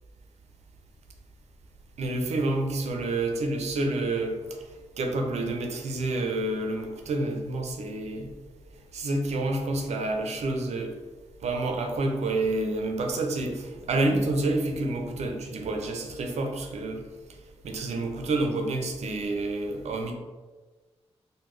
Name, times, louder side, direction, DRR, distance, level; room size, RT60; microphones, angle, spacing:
voice 1, 2.0-4.4 5.0-8.3 8.9-10.9 11.4-17.0 17.6-20.1, right 2 dB, 80° right, 3 dB, 0.5 m, -28 dB
3.6 x 2.2 x 3.1 m, 1.3 s
wide cardioid pair, 105°, 11 cm